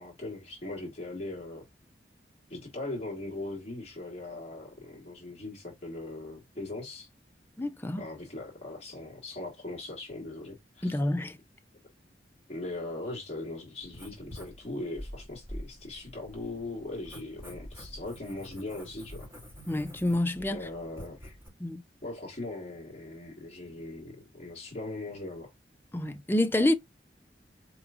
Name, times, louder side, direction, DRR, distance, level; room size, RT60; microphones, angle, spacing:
voice 1, 0.0-1.7 2.5-7.1 8.0-11.0 12.5-19.3 20.5-21.4 22.0-25.5, left 2 dB, 35° left, 1.4 m, -40 dB
voice 2, 7.6-8.0 10.8-11.4 19.7-20.6 21.6-21.8 25.9-26.7, left 1 dB, 10° left, 0.4 m, -27 dB
Writing, 13.8-21.5, equal, 15° right, 2.8 m, -46 dB
4.4 x 3.0 x 2.5 m
head